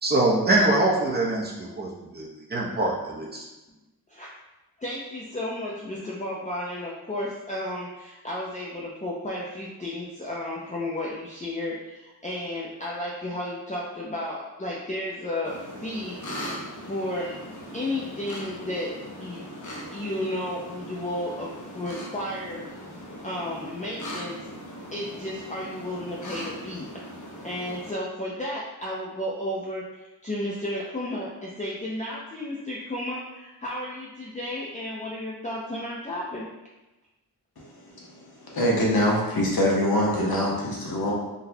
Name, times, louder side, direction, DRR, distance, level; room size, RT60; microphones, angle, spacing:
voice 1, 0.0-3.4, right 2 dB, 25° right, -2 dB, 0.7 m, -24 dB
voice 2, 4.8-16.2 16.8-17.4 17.7-18.9 19.2-19.4 19.9-22.7 23.2-24.4 24.9-26.9 27.4-36.5, left 1 dB, 20° left, -5 dB, 0.4 m, -33 dB
sound 1, 15.4-27.9, equal, 50° left, 0.8 m, -39 dB
voice 3, 37.6-38.1 38.5-41.1, left 1 dB, 70° left, -3 dB, 0.9 m, -24 dB
3.9 x 2.2 x 2.7 m, 1.1 s
wide cardioid pair, 70°, 38 cm